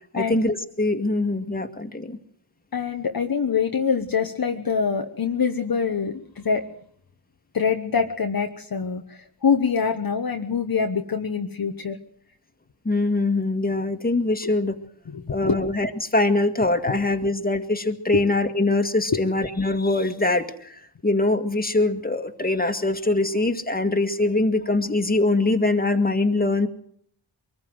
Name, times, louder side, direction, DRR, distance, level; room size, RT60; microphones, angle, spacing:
voice 1, 0.1-2.2 12.8-14.8 15.3-26.7, left 2 dB, 20° left, 6 dB, 2.0 m, -23 dB
voice 2, 2.7-6.6 7.5-12.0 15.1-15.6 18.1-18.2, left 6 dB, 45° left, 4 dB, 1.2 m, -24 dB
23.0 x 15.0 x 7.9 m, 0.65 s
cardioid pair, 65°, 47 cm